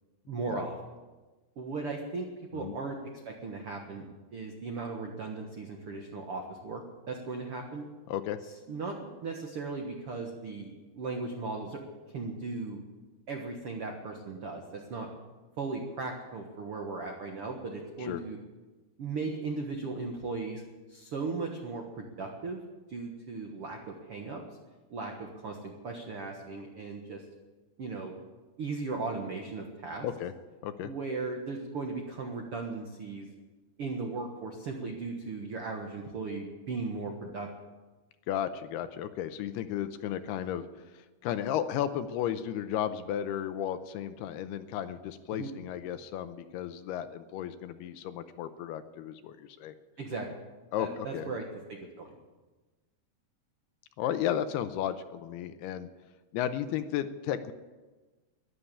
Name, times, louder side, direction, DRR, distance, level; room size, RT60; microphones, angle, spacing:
voice 1, 0.3-0.7 1.6-3.0 3.2-4.1 4.3-6.8 7.1-7.8 8.7-11.8 12.1-12.8 13.3-15.1 15.6-18.4 19.0-20.6 20.9-22.6 22.9-24.4 24.9-27.2 27.8-28.1 28.6-30.1 30.8-33.3 33.8-37.5 45.3-45.5 50.0-50.3 50.8-51.4 51.7-52.1, right 3 dB, 75° right, 2 dB, 1.3 m, -37 dB
voice 2, 8.1-8.4 18.0-18.2 30.0-30.3 30.6-30.9 38.3-40.6 40.9-49.7 50.7-51.4 54.0-55.9 56.3-57.5, left 10 dB, 80° left, 11 dB, 2.6 m, -34 dB
13.5 x 11.5 x 8.5 m, 1.2 s
omnidirectional pair, 4.9 m